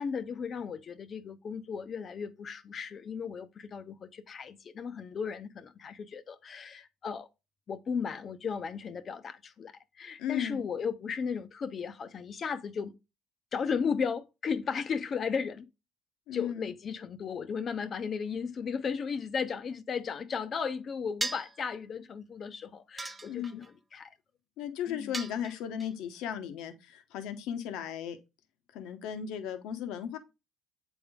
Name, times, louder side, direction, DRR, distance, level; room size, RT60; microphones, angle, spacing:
voice 1, 0.0-7.3 7.7-12.9 13.5-15.7 16.3-24.2 24.9-25.1, left 6 dB, 40° left, 0.6 m, -35 dB
voice 2, 10.2-10.7 16.3-16.7 23.3-23.6 24.6-28.2 28.7-30.2, left 9 dB, 75° left, 0.9 m, -36 dB
sound 1, 21.2-21.6 23.0-23.7 25.1-25.9, right 2 dB, 15° right, 0.4 m, -37 dB
7.7 x 3.6 x 3.5 m
supercardioid pair, 100°, 0 cm